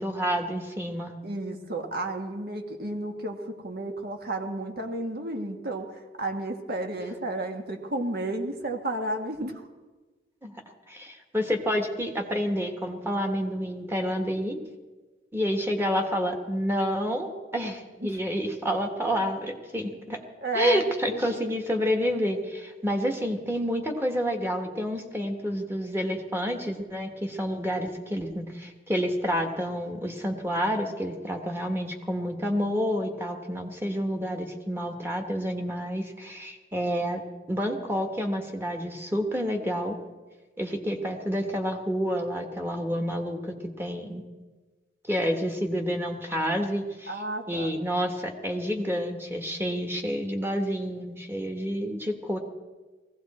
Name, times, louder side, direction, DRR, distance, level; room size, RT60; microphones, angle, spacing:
voice 1, 0.0-1.1 10.4-10.6 10.9-14.6 15.3-20.2 20.5-37.2 37.5-40.0 40.6-44.2 45.1-47.1 47.5-52.4, equal, 15° right, 4 dB, 1.5 m, -29 dB
voice 2, 1.2-9.7 18.0-18.2 20.4-21.6 47.1-47.7, right 2 dB, 60° right, 4 dB, 1.7 m, -32 dB
18.5 x 16.0 x 4.3 m, 1.3 s
head